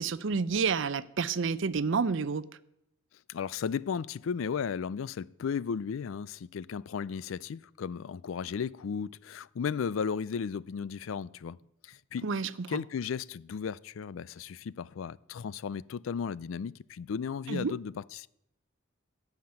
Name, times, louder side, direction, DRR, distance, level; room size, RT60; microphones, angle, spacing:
voice 1, 0.0-2.5 12.2-12.8 17.5-17.8, right 5 dB, 65° right, 0.5 m, -29 dB
voice 2, 3.3-11.6 11.8-12.2 12.7-18.3, left 6 dB, 75° left, 0.4 m, -35 dB
16.0 x 5.9 x 8.7 m
head